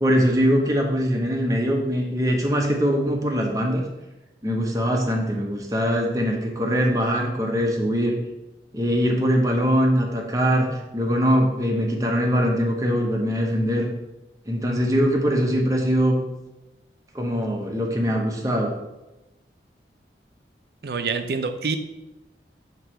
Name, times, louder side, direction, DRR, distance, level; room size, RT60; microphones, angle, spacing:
voice 1, 0.0-3.8 4.4-8.2 8.7-10.7 10.9-13.9 14.5-16.2 17.1-18.7, equal, 20° right, 1 dB, 0.9 m, -22 dB
voice 2, 20.8-21.8, right 4 dB, 65° right, 8 dB, 0.5 m, -26 dB
8.0 x 3.0 x 4.4 m, 0.98 s
head